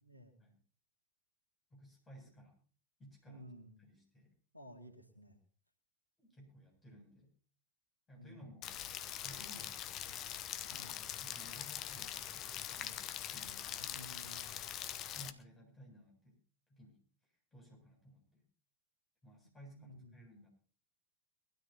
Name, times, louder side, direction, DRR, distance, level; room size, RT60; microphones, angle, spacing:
voice 1, 0.0-0.4 3.3-3.7 4.5-5.4 8.2-8.5 10.7-11.0 13.8-14.6 19.7-20.1, equal, 90° right, 4 dB, 2.2 m, -54 dB
voice 2, 1.7-2.5 3.0-3.4 3.8-4.3 6.2-7.3 8.1-8.7 9.2-10.0 10.7-13.9 15.1-16.4 16.7-18.4 19.2-20.5, equal, 15° left, -1 dB, 7.9 m, -58 dB
Rain, 8.6-15.3, left 11 dB, 35° left, 0.9 m, -43 dB
22.5 x 13.0 x 2.9 m, 0.42 s
figure-of-eight pair, 90°, 0 cm